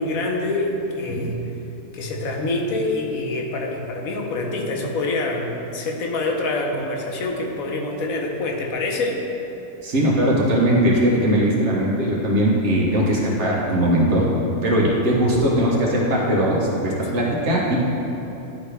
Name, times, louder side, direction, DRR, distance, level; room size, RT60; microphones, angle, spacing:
voice 1, 0.0-1.4 1.9-9.2 17.0-17.1, left 2 dB, 85° left, 0 dB, 1.3 m, -26 dB
voice 2, 9.8-14.3 14.6-17.8, right 1 dB, 55° right, -4 dB, 1.3 m, -20 dB
10.5 x 4.1 x 3.4 m, 3.0 s
omnidirectional pair, 1.4 m